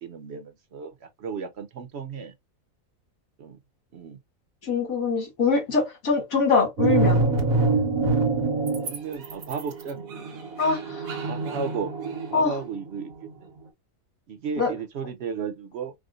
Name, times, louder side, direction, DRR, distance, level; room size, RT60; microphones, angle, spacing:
voice 1, 0.0-2.3 3.4-3.6 3.9-4.2 7.8-7.9 8.8-10.5 11.2-11.9 12.3-13.1 13.4-13.5 14.3-15.9, right 6 dB, 60° right, 0.8 m, -34 dB
voice 2, 4.6-7.2 10.6-11.3 12.3-12.6 14.6-14.7, left 4 dB, 90° left, 2.1 m, -24 dB
sound 1, 6.8-9.0 9.2-12.7, right 3 dB, 85° right, 1.5 m, -24 dB
4.8 x 2.2 x 2.4 m
omnidirectional pair, 1.4 m